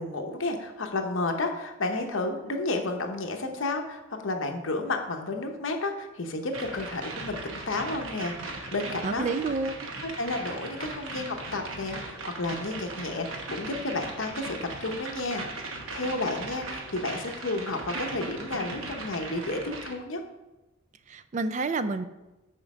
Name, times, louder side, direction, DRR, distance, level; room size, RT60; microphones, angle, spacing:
voice 1, 0.0-9.3 10.0-15.5 15.9-20.2, left 2 dB, 70° left, 4 dB, 0.9 m, -31 dB
sound 1, 6.5-19.9, right 3 dB, 75° right, 1.0 m, -38 dB
voice 2, 9.0-9.9 21.1-22.0, right 3 dB, 35° right, 12 dB, 0.3 m, -29 dB
6.4 x 4.5 x 6.0 m, 1.0 s
head